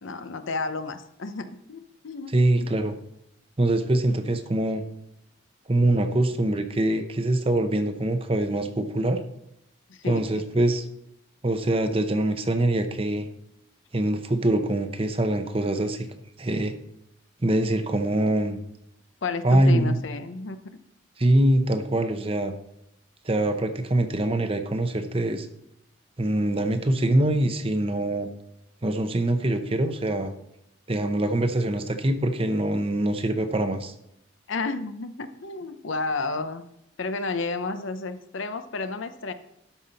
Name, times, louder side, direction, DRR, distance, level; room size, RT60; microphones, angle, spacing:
voice 1, 0.0-2.7 9.9-10.4 19.2-20.6 34.5-36.6 37.0-39.3, left 3 dB, 75° left, 10 dB, 0.7 m, -31 dB
voice 2, 2.3-2.9 3.6-4.8 5.7-9.2 10.1-10.8 11.4-13.3 13.9-16.1 16.4-16.7 17.4-18.6 19.4-20.0 21.2-22.5 23.2-25.5 26.2-28.3 28.8-30.3 30.9-33.9, right 1 dB, 30° right, 8 dB, 0.7 m, -24 dB
12.5 x 5.7 x 4.1 m, 0.79 s
head